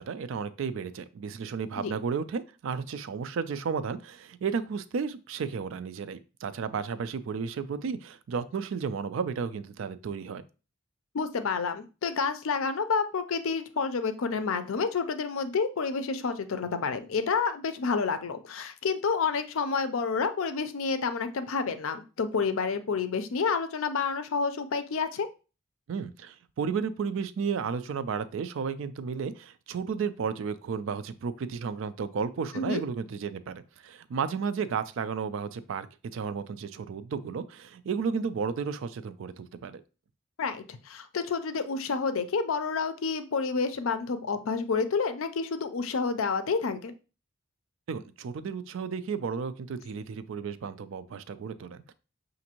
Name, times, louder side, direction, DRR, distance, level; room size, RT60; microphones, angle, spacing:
voice 1, 0.0-10.4 25.9-35.9 36.1-39.8 47.9-51.9, right 6 dB, 65° right, 13 dB, 0.3 m, -33 dB
voice 2, 11.1-25.3 32.5-32.8 40.4-46.9, left 5 dB, 75° left, 10 dB, 0.5 m, -29 dB
5.9 x 2.6 x 2.9 m, 0.33 s
head